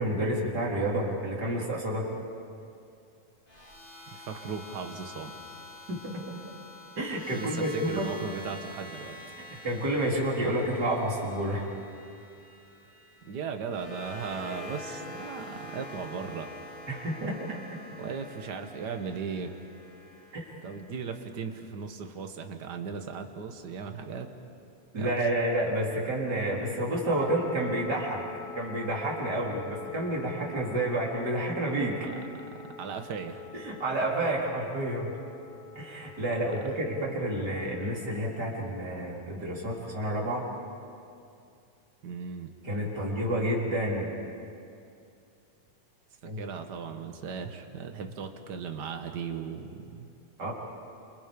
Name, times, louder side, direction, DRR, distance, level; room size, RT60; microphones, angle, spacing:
voice 1, 0.0-2.1 5.9-6.1 7.0-8.1 9.5-11.7 16.9-17.6 20.3-20.4 24.9-28.2 28.6-32.1 33.5-35.1 35.7-40.4 42.6-44.1 46.2-46.4 50.4-50.5, right 1 dB, 30° right, -3 dB, 4.3 m, -29 dB
sound 1, 3.5-21.6, left 1 dB, 20° left, 2.4 m, -46 dB
voice 2, 4.1-5.3 7.3-9.2 13.2-16.5 18.0-19.6 20.6-24.3 25.0-25.1 32.0-33.4 42.0-42.5 46.4-50.1, right 6 dB, 50° right, 5 dB, 1.4 m, -37 dB
sound 2, 27.1-38.2, left 6 dB, 85° left, 0.7 m, -46 dB
28.5 x 27.5 x 5.3 m, 2.5 s
omnidirectional pair, 3.5 m